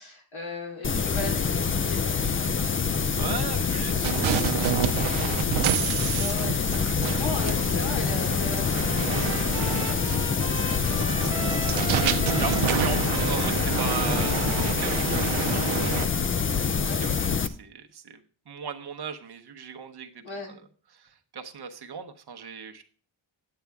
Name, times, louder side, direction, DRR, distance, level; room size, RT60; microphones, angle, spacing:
voice 1, 0.0-3.0 3.9-4.0 6.1-10.0 10.6-12.6 16.8-17.0 20.2-20.5, left 2 dB, 75° left, 0 dB, 3.6 m, -38 dB
sound 1, 0.8-17.5, left 5 dB, 30° left, 0.4 m, -26 dB
voice 2, 3.2-5.7 7.0-7.7 10.2-10.7 12.4-16.6 17.0-18.2 18.5-20.6 20.9-22.8, right 6 dB, 55° right, 6 dB, 1.0 m, -38 dB
sound 2, 4.0-16.0, right 11 dB, 85° right, 0.6 m, -30 dB
Trumpet, 8.6-16.7, equal, 15° left, 1.4 m, -39 dB
9.3 x 8.7 x 3.5 m, 0.42 s
wide cardioid pair, 150°, 47 cm